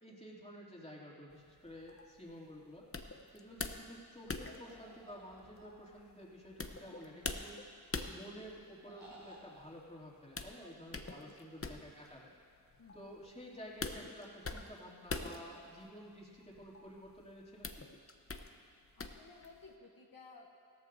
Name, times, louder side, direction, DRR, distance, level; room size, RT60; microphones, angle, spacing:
voice 1, 0.0-2.8 3.3-7.8 8.1-12.3 12.9-17.9, equal, 15° left, -4 dB, 2.8 m, -51 dB
sound 1, 1.3-19.7, left 3 dB, 35° left, 0.8 m, -46 dB
sound 2, 4.6-5.9 6.6-7.8 8.8-9.6, right 2 dB, 65° right, 3.3 m, -58 dB
voice 2, 11.0-11.6 12.8-13.0 19.0-20.5, left 3 dB, 65° left, -1 dB, 1.1 m, -57 dB
16.5 x 13.5 x 2.7 m, 2.3 s
cardioid pair, 40°, 38 cm